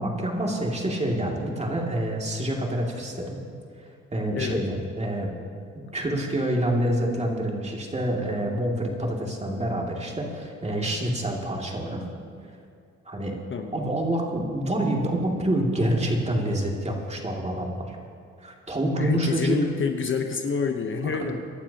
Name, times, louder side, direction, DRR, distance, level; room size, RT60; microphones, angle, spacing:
voice 1, 0.0-3.4 4.1-5.3 5.9-12.0 13.1-13.4 13.7-18.0 18.4-19.6 21.2-21.3, right 1 dB, 20° right, -1 dB, 2.4 m, -27 dB
voice 2, 19.0-21.4, left 5 dB, 40° left, 5 dB, 1.0 m, -27 dB
24.5 x 11.5 x 2.9 m, 2.4 s
cardioid pair, 90°, 30 cm